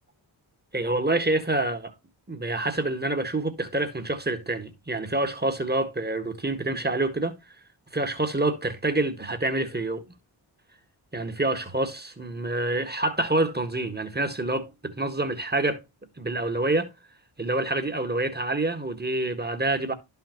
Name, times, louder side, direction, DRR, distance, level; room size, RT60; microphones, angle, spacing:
voice 1, 0.7-1.9 2.3-7.4 7.9-10.1 11.1-15.8 16.2-16.9 17.4-19.9, right 2 dB, 20° right, 1.6 m, -27 dB
11.0 x 5.8 x 3.0 m
cardioid pair, 45°, 48 cm